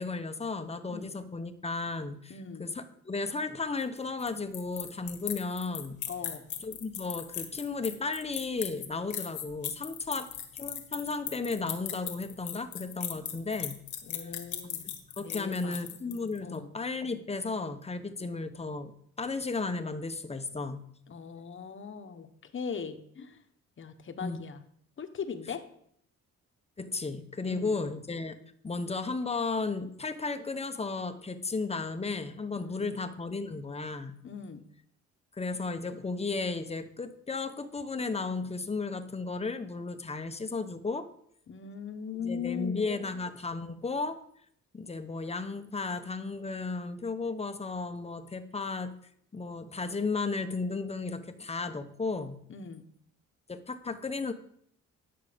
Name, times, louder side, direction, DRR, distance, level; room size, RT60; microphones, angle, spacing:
voice 1, 0.0-2.3 2.6-6.0 6.6-10.3 10.6-13.8 15.2-18.9 19.2-20.9 24.2-24.4 26.8-28.4 28.6-34.2 35.4-41.1 42.2-44.2 44.7-48.9 49.3-52.4 53.5-54.3, left 3 dB, 20° left, 9 dB, 1.0 m, -34 dB
voice 2, 2.3-2.7 6.1-6.5 13.1-13.3 14.0-14.9 15.2-15.8 16.4-16.7 18.2-18.3 21.1-23.4 23.8-24.6 25.0-25.6 27.4-27.8 32.6-32.9 34.2-34.6 41.5-42.9 52.5-52.8, left 6 dB, 40° left, 8 dB, 1.2 m, -40 dB
sound 1, 3.8-16.4, left 10 dB, 75° left, 1.5 m, -38 dB
10.5 x 6.6 x 5.2 m, 0.67 s
cardioid pair, 90°, 30 cm